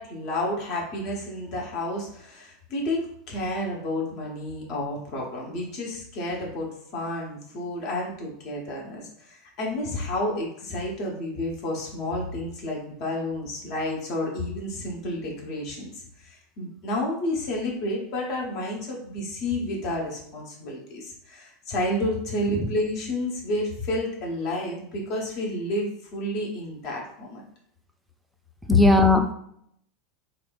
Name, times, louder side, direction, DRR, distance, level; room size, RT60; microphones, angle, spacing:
voice 1, 0.0-27.4, left 1 dB, 50° left, -2 dB, 1.0 m, -30 dB
voice 2, 28.7-29.3, left 2 dB, ahead, 4 dB, 0.4 m, -18 dB
3.3 x 2.6 x 2.4 m, 0.70 s
figure-of-eight pair, 85°, 0 cm